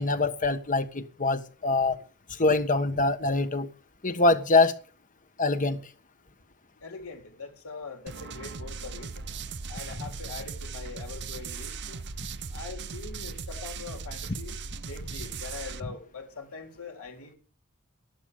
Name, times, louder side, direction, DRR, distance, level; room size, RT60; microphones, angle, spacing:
voice 1, 0.0-2.0 2.4-3.7 4.0-4.7 5.4-5.8, left 3 dB, 35° left, 1.4 m, -24 dB
voice 2, 6.8-9.2 9.7-12.0 12.5-14.6 14.8-17.3, left 4 dB, 70° left, 4.1 m, -42 dB
sound 1, 8.1-15.8, right 4 dB, 55° right, 0.9 m, -38 dB
13.0 x 11.5 x 6.6 m
head